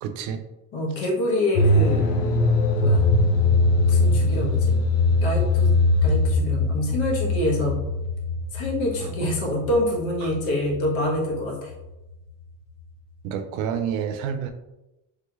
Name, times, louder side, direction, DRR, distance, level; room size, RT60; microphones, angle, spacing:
voice 1, 0.0-0.4 9.0-9.3 10.2-10.3 13.2-14.5, right 8 dB, 70° right, 8 dB, 0.5 m, -29 dB
voice 2, 0.7-2.1 2.8-3.1 3.9-4.8 5.2-5.7 6.0-7.8 8.5-11.7, left 1 dB, 65° left, -1 dB, 1.3 m, -26 dB
sound 1, 1.5-11.4 11.7-11.8, left 2 dB, 85° left, 0.7 m, -21 dB
3.4 x 2.9 x 2.3 m, 0.99 s
supercardioid pair, 80°, 49 cm